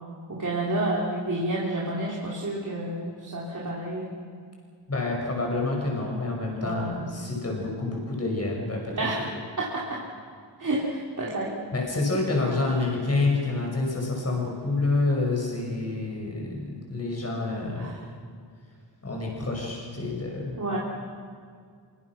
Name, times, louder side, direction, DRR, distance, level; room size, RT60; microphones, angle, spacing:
voice 1, 0.3-4.1 6.6-6.9 8.9-9.3 9.6-10.0 10.6-11.5 17.8-18.0 20.6-20.8, right 1 dB, 40° right, -5 dB, 3.9 m, -29 dB
voice 2, 4.9-9.3 11.7-17.9 19.0-20.6, left 3 dB, 35° left, -1 dB, 5.9 m, -28 dB
26.0 x 24.5 x 6.2 m, 2.1 s
wide cardioid pair, 125°, 45 cm